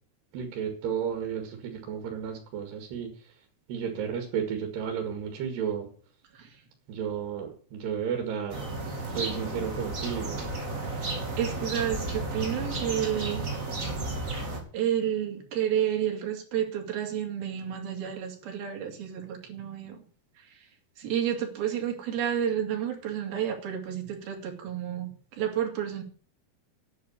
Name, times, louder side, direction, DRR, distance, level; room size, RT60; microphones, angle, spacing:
voice 1, 0.3-3.1 3.7-5.9 6.9-8.6 9.1-10.5, right 7 dB, 85° right, 3 dB, 4.2 m, -32 dB
sound 1, 8.5-14.6, right 2 dB, 25° right, 2.4 m, -33 dB
voice 2, 11.4-13.5 14.7-20.0 21.0-26.0, right 9 dB, 65° right, 2 dB, 4.3 m, -30 dB
10.5 x 8.3 x 8.3 m, 0.43 s
omnidirectional pair, 4.7 m